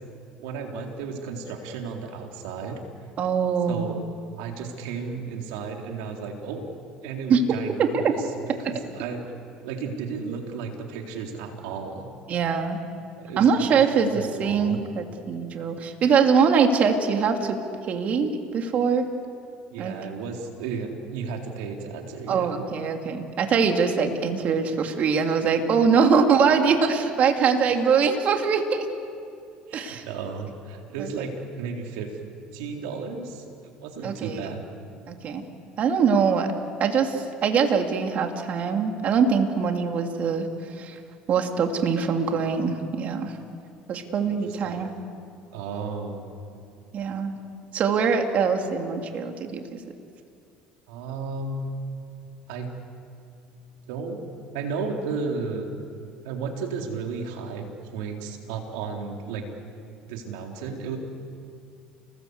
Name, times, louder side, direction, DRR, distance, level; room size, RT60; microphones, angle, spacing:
voice 1, 0.4-2.8 3.7-4.0 4.4-6.6 7.0-9.2 9.6-12.1 13.2-13.6 14.1-14.8 19.7-22.6 29.7-32.2 32.5-34.6 44.2-44.8 45.5-46.3 50.9-51.6 52.5-52.7 53.9-54.2 54.5-55.7 56.2-59.4 60.0-61.0, right 5 dB, 80° right, 2 dB, 3.9 m, -34 dB
voice 2, 3.2-4.0 7.3-7.4 7.8-8.1 12.3-12.8 13.4-17.6 17.9-19.0 19.8-19.9 22.3-28.9 29.7-30.0 31.0-31.3 34.0-34.4 35.1-35.4 35.8-36.5 36.8-40.5 40.8-41.0 41.3-43.3 43.9-44.9 46.9-47.4 47.7-49.8, right 6 dB, 50° right, 4 dB, 3.0 m, -23 dB
29.5 x 20.5 x 8.2 m, 2.5 s
supercardioid pair, 95°, 3 cm